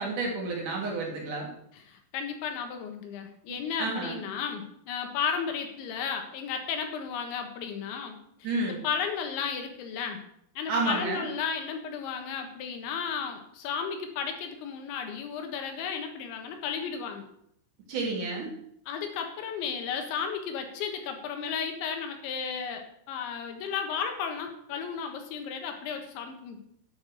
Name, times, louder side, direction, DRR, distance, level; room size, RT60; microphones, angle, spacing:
voice 1, 0.0-1.5 3.5-4.2 8.4-8.8 10.7-11.3 17.9-18.5, right 3 dB, 50° right, -2 dB, 3.9 m, -30 dB
voice 2, 1.7-8.2 8.4-8.5 8.8-10.2 10.6-17.3 18.9-26.6, left 6 dB, 85° left, 5 dB, 3.9 m, -34 dB
9.6 x 7.7 x 6.8 m, 0.72 s
omnidirectional pair, 5.2 m